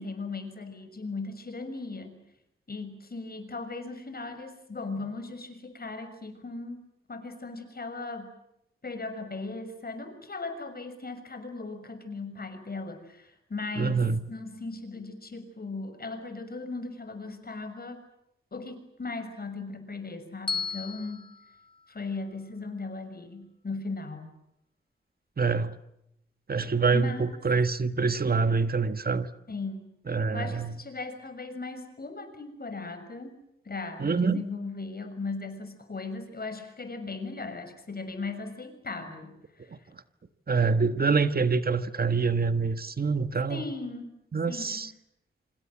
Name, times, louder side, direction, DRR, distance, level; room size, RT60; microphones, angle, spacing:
voice 1, 0.0-2.2 2.7-6.8 7.1-8.3 8.8-18.0 18.5-21.3 21.9-24.3 26.9-27.3 29.5-29.9 30.3-33.3 33.6-39.8 43.5-44.1 44.5-44.8, left 3 dB, 45° left, 9 dB, 6.3 m, -37 dB
voice 2, 13.8-14.2 25.4-25.7 26.5-29.3 30.1-30.7 34.0-34.4 39.7-39.8 40.5-43.6 44.3-44.9, right 4 dB, 45° right, 11 dB, 1.7 m, -26 dB
Bell, 20.5-22.7, left 5 dB, 25° left, 2.1 m, -37 dB
27.0 x 26.0 x 7.6 m, 0.81 s
cardioid pair, 55°, 21 cm